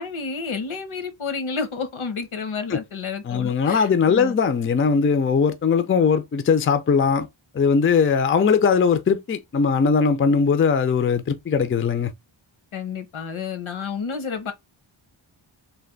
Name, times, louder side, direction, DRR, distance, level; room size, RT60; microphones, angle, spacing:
voice 1, 0.0-4.4 12.7-14.5, left 5 dB, 75° left, 1.0 m, -30 dB
voice 2, 3.2-7.3 7.5-12.1, left 6 dB, 30° left, 0.4 m, -20 dB
3.3 x 2.6 x 3.7 m
wide cardioid pair, 135°, 48 cm